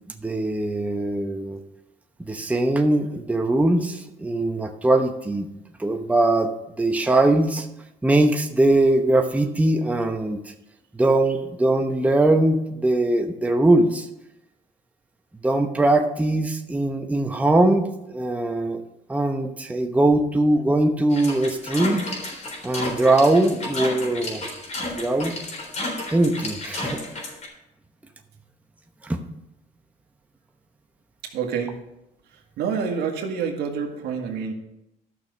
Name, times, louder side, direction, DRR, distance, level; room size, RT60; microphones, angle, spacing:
voice 1, 0.2-1.6 2.3-5.5 5.8-6.5 6.8-7.7 8.0-10.4 10.9-14.1 15.4-17.8 18.1-18.8 19.1-22.1 22.6-24.4 24.9-25.4 26.1-27.0 29.0-29.2, right 2 dB, 10° right, 4 dB, 0.9 m, -21 dB
sound 1, 21.1-27.5, left 2 dB, 45° left, 3.8 m, -32 dB
voice 2, 31.3-31.8 32.6-34.5, right 6 dB, 75° right, 2 dB, 1.8 m, -27 dB
12.0 x 6.4 x 5.3 m, 0.88 s
cardioid pair, 110°, 17 cm